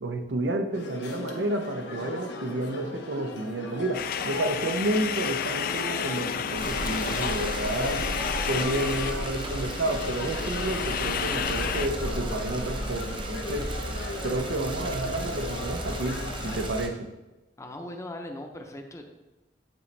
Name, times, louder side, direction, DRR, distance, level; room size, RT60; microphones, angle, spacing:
voice 1, 0.0-8.1 8.5-13.7 14.2-17.1, right 1 dB, 85° right, 7 dB, 0.6 m, -30 dB
sound 1, 0.7-16.7, left 2 dB, 90° left, 1.0 m, -38 dB
sound 2, 3.9-11.9, left 7 dB, 55° left, 0.4 m, -31 dB
sound 3, 6.6-16.9, right 1 dB, 30° right, 0.7 m, -34 dB
voice 2, 17.6-19.1, left 1 dB, 15° left, 3 dB, 0.6 m, -39 dB
9.9 x 4.0 x 3.3 m, 1.0 s
head